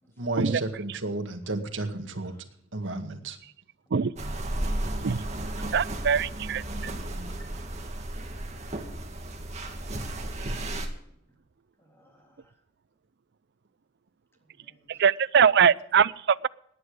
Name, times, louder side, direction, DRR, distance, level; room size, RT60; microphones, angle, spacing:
voice 1, 0.2-2.4 2.7-3.4, right 2 dB, 75° right, 5 dB, 2.0 m, -32 dB
sound 1, 4.2-10.9, right 1 dB, 35° right, 2.2 m, -33 dB
voice 2, 5.7-6.6 14.9-16.5, right 7 dB, 60° right, 18 dB, 0.5 m, -22 dB
voice 3, 7.3-7.7 11.8-12.6 14.4-15.0, equal, 15° left, 1 dB, 3.5 m, -60 dB
18.5 x 9.9 x 5.0 m, 0.73 s
head